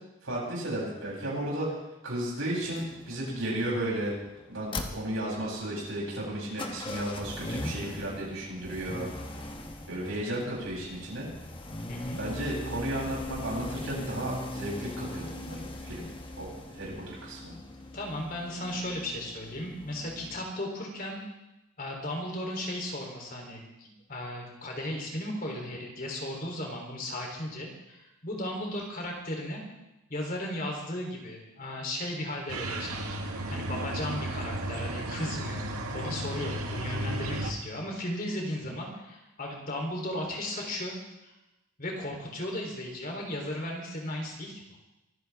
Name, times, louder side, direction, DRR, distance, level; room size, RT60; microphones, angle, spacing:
voice 1, 0.2-1.8 2.0-4.1 4.5-9.1 9.9-11.3 12.2-16.0 16.4-17.5, right 1 dB, 60° right, -5 dB, 8.0 m, -34 dB
sound 1, 2.6-20.5, left 1 dB, 25° left, 1.2 m, -40 dB
voice 2, 11.9-12.2 17.9-21.2 21.8-29.6 30.1-33.1 33.5-35.6 35.9-41.0 41.2-41.3 41.8-44.6, left 1 dB, 40° left, 0 dB, 3.5 m, -36 dB
sound 2, 32.5-37.5, right 1 dB, 80° right, 1.9 m, -34 dB
24.0 x 15.5 x 3.6 m, 0.96 s
head